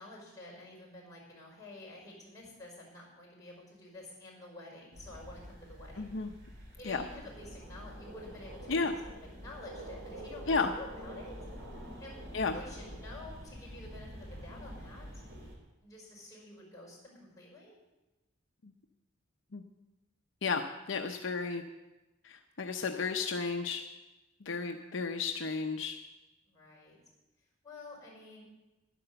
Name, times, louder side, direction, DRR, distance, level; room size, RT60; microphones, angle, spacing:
voice 1, 0.0-6.2 6.8-9.0 9.4-11.3 12.0-15.2 15.8-17.8 24.4-25.1 26.5-27.0 27.6-28.4, left 2 dB, 15° left, -4 dB, 5.3 m, -50 dB
sound 1, 4.9-15.6, equal, 60° right, 3.2 m, -47 dB
voice 2, 6.0-6.3 6.8-7.0 8.7-8.9 10.5-10.7 12.3-12.5 18.6-18.7 19.5-19.6 20.4-20.6 20.9-21.6 22.2-23.8 24.4-26.0, left 4 dB, 65° left, 5 dB, 0.7 m, -33 dB
11.0 x 10.0 x 6.8 m, 1.1 s
head